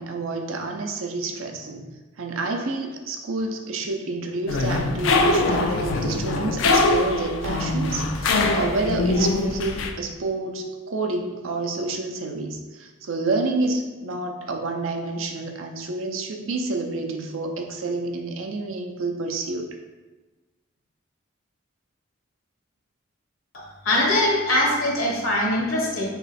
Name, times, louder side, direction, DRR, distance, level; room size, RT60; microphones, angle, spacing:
voice 1, 0.0-1.9 2.2-19.7, right 3 dB, 80° right, 3 dB, 0.5 m, -29 dB
sound 1, 4.5-9.9, left 3 dB, 75° left, 0.4 m, -22 dB
voice 2, 23.5-26.1, left 1 dB, 90° left, -2 dB, 1.0 m, -22 dB
3.1 x 3.0 x 4.1 m, 1.2 s
head